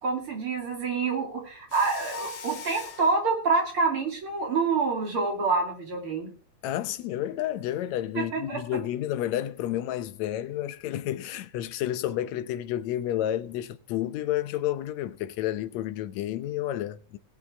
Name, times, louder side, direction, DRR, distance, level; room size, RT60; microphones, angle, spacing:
voice 1, 0.0-6.3 8.2-8.6, right 4 dB, 45° right, 3.5 m, -27 dB
Mechanisms, 1.7-3.2, left 4 dB, 55° left, 2.1 m, -39 dB
voice 2, 6.6-17.2, left 12 dB, 75° left, 2.0 m, -30 dB
19.5 x 7.7 x 3.5 m
omnidirectional pair, 3.4 m